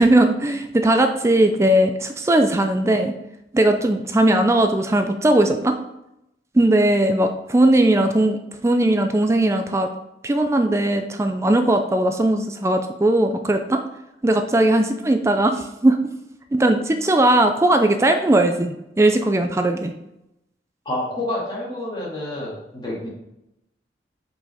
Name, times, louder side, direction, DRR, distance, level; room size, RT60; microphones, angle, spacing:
voice 1, 0.0-3.1 3.5-5.8 6.5-9.9 10.2-13.8 14.2-16.0 16.5-19.9, right 1 dB, 15° right, 6 dB, 0.3 m, -18 dB
voice 2, 20.9-23.1, left 1 dB, 25° left, -6 dB, 2.2 m, -28 dB
6.1 x 5.3 x 3.5 m, 0.86 s
head